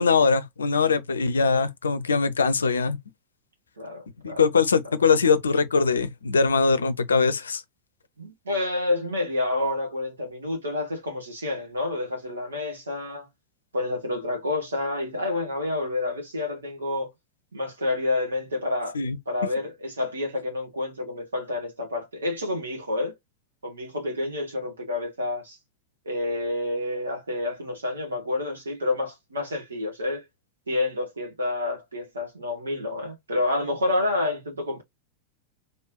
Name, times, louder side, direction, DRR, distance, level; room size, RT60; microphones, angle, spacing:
voice 1, 0.0-3.0 4.2-7.6 18.9-19.2, left 5 dB, 75° left, 0.6 m, -22 dB
voice 2, 3.8-4.4 8.2-13.3 13.7-17.1 17.5-19.0 19.3-23.1 23.6-25.6 26.0-30.2 30.7-34.8, left 2 dB, 75° right, 2.2 m, -29 dB
4.0 x 3.5 x 2.9 m
figure-of-eight pair, 90°, 0 cm